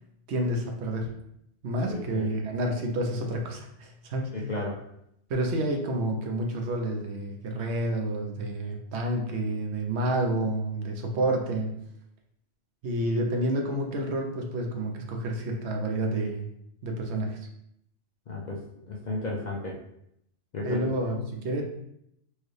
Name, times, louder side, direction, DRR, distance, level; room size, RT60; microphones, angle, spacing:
voice 1, 0.3-1.1 1.6-4.5 5.3-11.7 12.8-16.5 16.8-17.4 20.6-21.6, right 1 dB, 70° right, 2 dB, 0.9 m, -29 dB
voice 2, 1.9-2.2 4.3-4.7 18.3-18.6 18.9-19.7 20.5-20.8, left 2 dB, 50° left, -2 dB, 0.5 m, -33 dB
4.5 x 2.2 x 3.1 m, 0.76 s
omnidirectional pair, 1.2 m